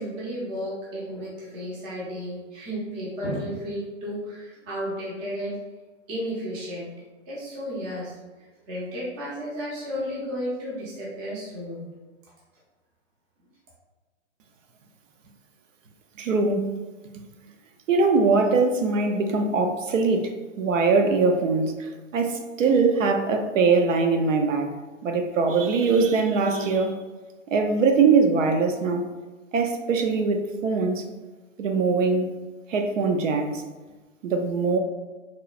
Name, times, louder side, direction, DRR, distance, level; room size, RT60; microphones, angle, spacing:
voice 1, 0.0-5.6 6.1-6.9 7.3-11.9, equal, 15° right, -6 dB, 0.4 m, -33 dB
voice 2, 16.2-16.7 17.1-17.2 17.9-24.7 25.0-26.9 27.5-29.1 29.5-31.1 31.6-32.4 32.7-33.6 34.2-34.8, right 4 dB, 80° right, 4 dB, 0.5 m, -22 dB
3.0 x 2.0 x 2.3 m, 1.2 s
hypercardioid pair, 130°, 38 cm